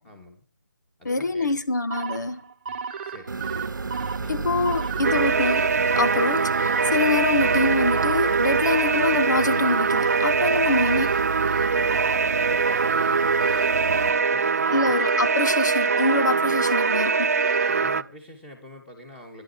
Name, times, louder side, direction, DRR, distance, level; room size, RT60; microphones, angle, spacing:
voice 1, 0.0-0.5 1.0-1.6 2.7-3.4 4.1-5.0 11.6-15.3 17.7-19.4, left 1 dB, 5° left, 2.6 m, -46 dB
voice 2, 1.0-2.4 4.3-5.7 6.0-11.2 14.7-17.3, left 3 dB, 60° left, 1.4 m, -25 dB
sound 1, 1.9-17.9, right 6 dB, 30° right, 1.1 m, -34 dB
sound 2, 3.3-14.1, right 4 dB, 70° right, 0.9 m, -32 dB
sound 3, 5.0-18.0, right 5 dB, 50° right, 0.6 m, -23 dB
14.5 x 11.0 x 4.7 m
figure-of-eight pair, 160°, 11 cm